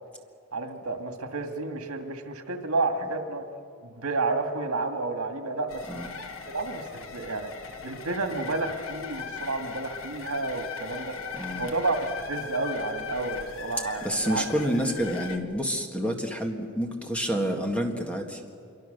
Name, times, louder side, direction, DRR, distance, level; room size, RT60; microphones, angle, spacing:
voice 1, 0.5-3.4 3.8-6.0 6.5-11.2 11.6-14.5, right 3 dB, 85° right, 5 dB, 2.1 m, -31 dB
sound 1, 5.7-15.4, left 6 dB, 65° left, 1.5 m, -39 dB
voice 2, 11.3-11.7 14.0-18.4, equal, 5° left, 2 dB, 1.8 m, -28 dB
26.5 x 23.5 x 6.8 m, 2.3 s
head